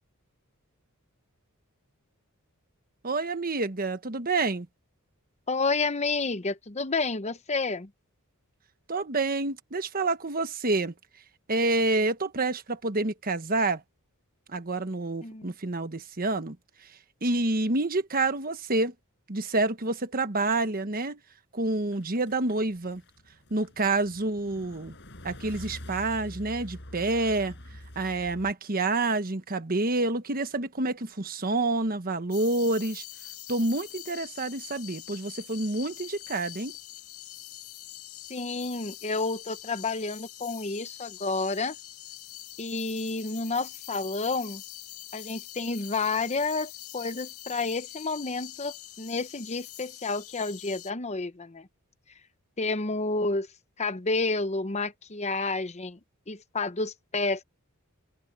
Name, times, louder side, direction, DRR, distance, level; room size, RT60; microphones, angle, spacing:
voice 1, 3.0-4.7 8.9-10.9 11.5-13.8 14.5-16.6 17.2-18.9 19.3-21.2 21.5-23.0 23.5-24.9 25.2-27.5 27.9-33.0 33.5-36.8, right 2 dB, 40° right, 1.3 m, -28 dB
voice 2, 5.5-7.9 15.2-15.5 38.3-41.8 42.6-44.6 45.1-51.7 52.6-53.5 53.8-56.0 56.3-57.4, left 3 dB, 30° left, 0.9 m, -30 dB
sound 1, 21.9-28.5, left 1 dB, 55° left, 8.0 m, -45 dB
sound 2, 32.3-50.9, left 14 dB, 70° left, 2.3 m, -44 dB
head